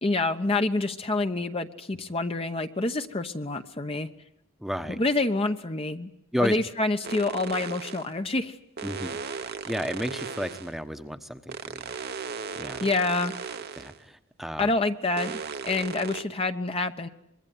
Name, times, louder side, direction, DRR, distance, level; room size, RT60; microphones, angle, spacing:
voice 1, 0.0-4.1 5.0-6.1 6.4-8.6 12.8-13.3 14.6-15.3 15.6-17.1, left 2 dB, 30° left, 7 dB, 1.1 m, -27 dB
voice 2, 4.6-5.0 6.3-6.6 8.8-11.9 12.2-12.9 13.8-14.7, equal, ahead, 8 dB, 1.1 m, -33 dB
sound 1, 7.0-8.1 8.8-10.8 11.5-14.0 15.2-16.2, right 5 dB, 55° right, 1.1 m, -36 dB
25.0 x 22.5 x 9.6 m, 0.75 s
head